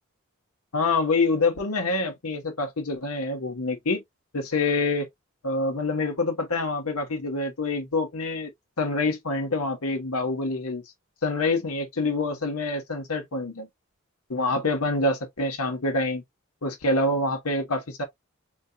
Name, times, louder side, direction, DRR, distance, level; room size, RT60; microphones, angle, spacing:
voice 1, 0.7-4.0 4.3-5.1 5.4-8.5 8.8-10.8 11.2-13.7 14.3-16.2 16.6-18.0, left 2 dB, 90° left, 1.1 m, -26 dB
4.4 x 2.3 x 2.7 m
head